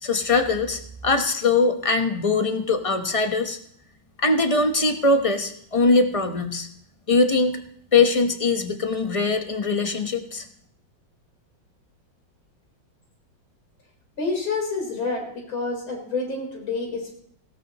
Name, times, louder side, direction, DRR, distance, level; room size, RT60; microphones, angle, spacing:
voice 1, 0.0-3.6 4.2-6.7 7.1-7.6 7.9-10.5, left 3 dB, 25° left, 6 dB, 0.8 m, -21 dB
voice 2, 14.2-17.1, left 3 dB, 90° left, 1 dB, 4.8 m, -28 dB
19.0 x 16.5 x 3.0 m, 0.65 s
omnidirectional pair, 2.1 m